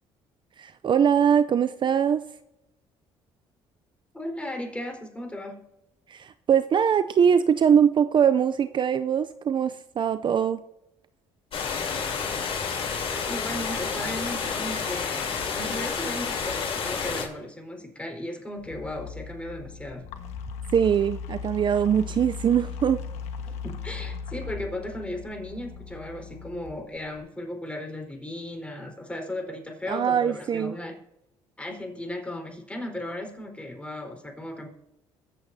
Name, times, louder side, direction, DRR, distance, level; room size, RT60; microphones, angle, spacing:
voice 1, 0.6-2.2 6.1-10.6 20.7-23.0 29.9-30.7, right 8 dB, 45° right, 12 dB, 0.5 m, -22 dB
voice 2, 4.1-5.6 13.3-20.1 23.5-30.9 31.6-34.7, left 1 dB, 10° left, 2 dB, 4.2 m, -36 dB
sound 1, 11.5-17.3, left 6 dB, 55° left, 3.3 m, -30 dB
sound 2, 18.6-27.2, left 5 dB, 80° left, 1.4 m, -38 dB
23.0 x 7.7 x 2.7 m, 0.88 s
supercardioid pair, 75°, 12 cm